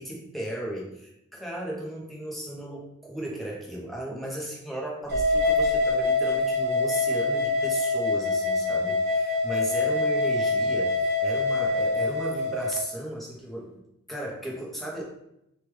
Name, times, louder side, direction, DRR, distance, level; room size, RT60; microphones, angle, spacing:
voice 1, 0.0-13.8 14.1-15.1, right 1 dB, ahead, -3 dB, 0.5 m, -35 dB
sound 1, 5.1-12.8, left 2 dB, 50° right, 0.9 m, -25 dB
3.1 x 2.1 x 3.2 m, 0.83 s
head